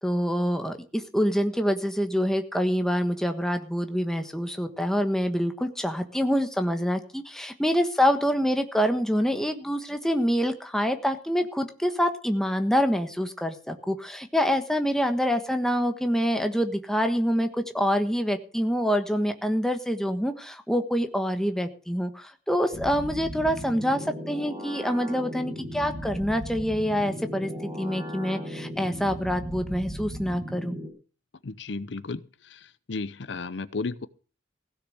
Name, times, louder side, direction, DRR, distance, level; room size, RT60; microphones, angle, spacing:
voice 1, 0.0-27.5 27.8-30.8, equal, 5° left, 6 dB, 1.3 m, -26 dB
sound 1, 22.7-30.9, equal, 20° right, 5.9 m, -37 dB
voice 2, 31.4-34.1, left 3 dB, 70° left, 16 dB, 0.7 m, -34 dB
16.0 x 6.7 x 7.8 m, 0.38 s
head